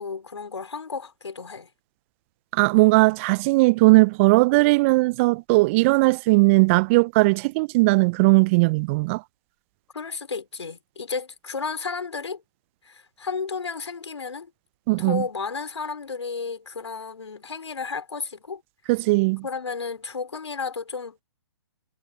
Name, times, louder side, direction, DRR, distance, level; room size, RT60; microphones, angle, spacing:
voice 1, 0.0-1.7 9.9-12.4 12.8-14.5 15.0-18.6 19.4-21.2, left 5 dB, 75° left, 4.3 m, -32 dB
voice 2, 2.5-9.2 14.9-15.2 18.9-19.4, right 25 dB, 25° right, 0.5 m, -18 dB
figure-of-eight pair, 130°, 15 cm